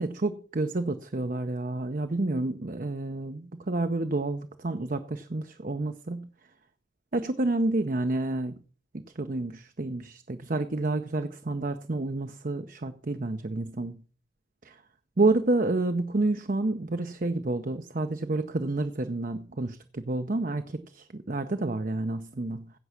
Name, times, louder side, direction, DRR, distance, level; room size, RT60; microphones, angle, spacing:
voice 1, 0.0-6.3 7.1-8.6 8.9-14.0 14.6-14.8 15.2-22.7, right 2 dB, 40° right, 8 dB, 0.6 m, -29 dB
16.0 x 6.1 x 5.8 m, 0.41 s
head